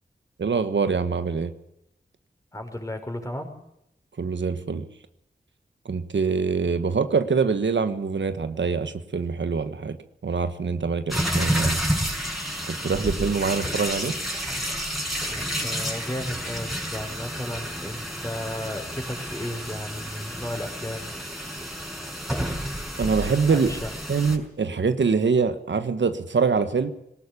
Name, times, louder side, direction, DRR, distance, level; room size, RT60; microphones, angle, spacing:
voice 1, 0.4-1.5 4.2-4.9 5.8-10.0 10.2-11.8 12.7-14.1 23.0-23.7 24.1-26.9, right 5 dB, 85° right, 9 dB, 1.4 m, -24 dB
voice 2, 2.5-3.5 15.2-21.1 23.5-23.9, left 1 dB, 15° left, 4 dB, 5.8 m, -34 dB
sound 1, 11.1-24.4, equal, ahead, 5.8 m, -30 dB
19.5 x 18.0 x 8.5 m, 0.79 s
cardioid pair, 45°, 18 cm